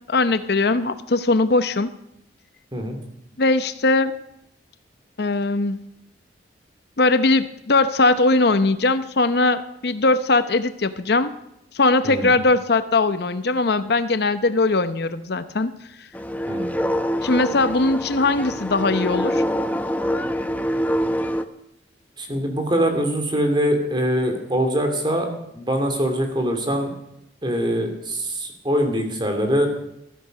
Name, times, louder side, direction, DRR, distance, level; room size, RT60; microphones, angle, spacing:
voice 1, 0.1-1.9 3.4-4.1 5.2-5.8 7.0-11.3 11.7-15.7 17.2-19.4, left 3 dB, 60° left, 11 dB, 0.8 m, -20 dB
sound 1, 16.1-21.4, equal, 10° left, 0.8 m, -25 dB
voice 2, 22.2-25.3 25.5-26.9 27.4-29.7, equal, 25° right, 5 dB, 2.9 m, -23 dB
15.0 x 13.5 x 6.6 m, 0.79 s
head